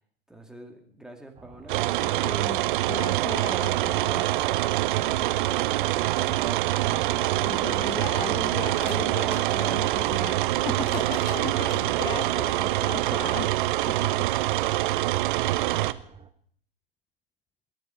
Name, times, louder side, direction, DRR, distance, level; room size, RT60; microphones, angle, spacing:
voice 1, 0.3-2.3 3.8-4.4 5.5-5.9 6.2-9.5 10.8-12.7 13.4-13.6, right 1 dB, ahead, 2 dB, 2.4 m, -44 dB
sound 1, 1.3-16.3, right 7 dB, 15° right, 1.0 m, -48 dB
sound 2, 1.7-15.9, right 16 dB, 55° right, 0.7 m, -25 dB
voice 2, 2.0-4.2 7.3-13.5 13.9-14.3, left 7 dB, 15° left, 14 dB, 0.5 m, -37 dB
sound 3, 8.7-9.5 10.5-11.8 12.6-12.7 14.0-14.1, left 5 dB, 65° left, 5.0 m, -46 dB
28.0 x 10.5 x 4.5 m, 0.63 s
figure-of-eight pair, 95°, 31 cm